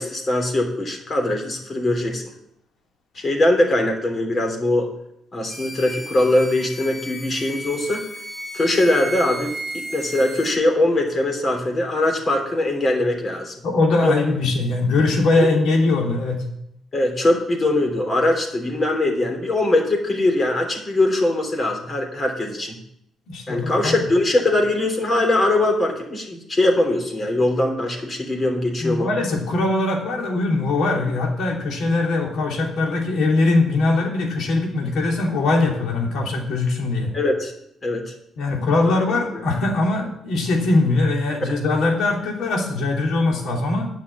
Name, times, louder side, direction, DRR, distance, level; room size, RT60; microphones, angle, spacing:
voice 1, 0.0-2.2 3.1-4.9 5.3-8.0 8.5-9.5 9.9-13.5 14.0-14.1 15.4-15.5 16.9-22.8 23.5-29.1 37.1-37.5 37.8-38.0 39.3-39.4, left 1 dB, 35° left, 2 dB, 3.2 m, -21 dB
sound 1, 5.5-10.5, right 1 dB, 5° left, 1.9 m, -34 dB
voice 2, 13.6-16.4 23.3-23.9 28.8-37.1 38.4-43.8, left 2 dB, 75° left, 0 dB, 2.9 m, -21 dB
10.0 x 5.9 x 8.3 m, 0.74 s
cardioid pair, 90°, 0 cm